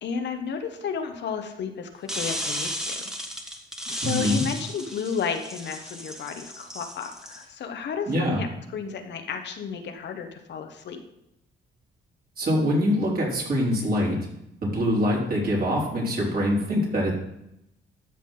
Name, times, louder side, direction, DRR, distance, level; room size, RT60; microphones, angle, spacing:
voice 1, 0.0-3.0 3.9-11.0, left 6 dB, 60° left, 6 dB, 1.2 m, -32 dB
sound 1, 2.1-7.4, equal, 5° right, 1.3 m, -34 dB
voice 2, 4.0-4.4 8.1-8.4 12.4-14.2 14.6-17.1, equal, 50° right, -3 dB, 3.7 m, -24 dB
13.0 x 6.0 x 3.8 m, 0.83 s
cardioid pair, 90°, 20 cm